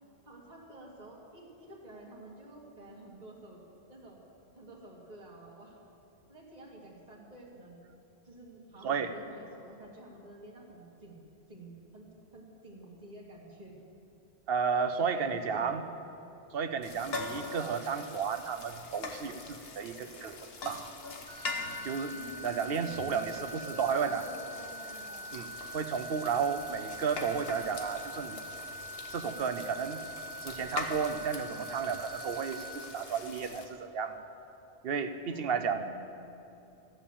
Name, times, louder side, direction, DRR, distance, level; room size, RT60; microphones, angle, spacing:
voice 1, 0.3-3.6 3.9-4.2 4.6-5.8 6.3-7.8 8.2-13.7 15.0-15.8 22.1-25.4 35.3-36.4, right 1 dB, 35° right, -5 dB, 2.2 m, -50 dB
voice 2, 8.8-9.1 14.5-15.8 16.5-20.9 21.8-22.1 22.4-24.3 25.3-28.4 29.1-30.0 30.4-34.2 34.8-35.8, right 6 dB, 60° right, 9 dB, 0.9 m, -33 dB
sound 1, 16.8-33.6, left 3 dB, 60° left, 1.4 m, -43 dB
sound 2, 21.3-32.7, right 1 dB, 5° left, 2.9 m, -44 dB
14.5 x 8.6 x 7.1 m, 2.8 s
omnidirectional pair, 1.2 m